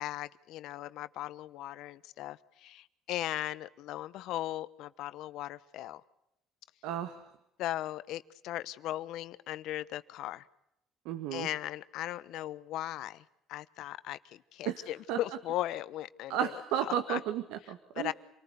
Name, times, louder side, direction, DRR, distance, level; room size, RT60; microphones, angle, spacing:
voice 1, 0.0-6.0 7.6-10.4 11.3-13.2 13.5-17.2 17.9-18.1, left 14 dB, 70° left, 15 dB, 1.1 m, -38 dB
voice 2, 6.8-7.2 11.1-11.5 14.7-15.2 16.3-18.1, right 10 dB, 85° right, 10 dB, 1.7 m, -33 dB
28.0 x 19.0 x 8.2 m, 0.84 s
cardioid pair, 130°, 0 cm